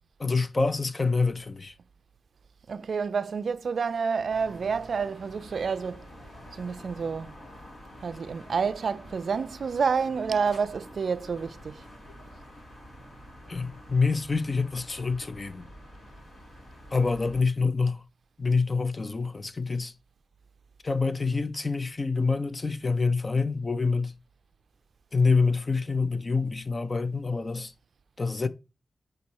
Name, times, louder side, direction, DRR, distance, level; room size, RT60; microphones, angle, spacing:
voice 1, 0.2-1.7 13.5-15.7 16.9-18.0 18.4-19.9 20.8-24.1 25.1-27.7 28.2-28.5, left 4 dB, 30° left, 0.5 m, -26 dB
voice 2, 2.7-6.1 6.5-7.3 8.0-11.8, right 5 dB, 70° right, 0.3 m, -29 dB
sound 1, 4.3-17.4, equal, 55° left, 3.5 m, -48 dB
5.1 x 4.1 x 4.5 m
wide cardioid pair, 140°, 0 cm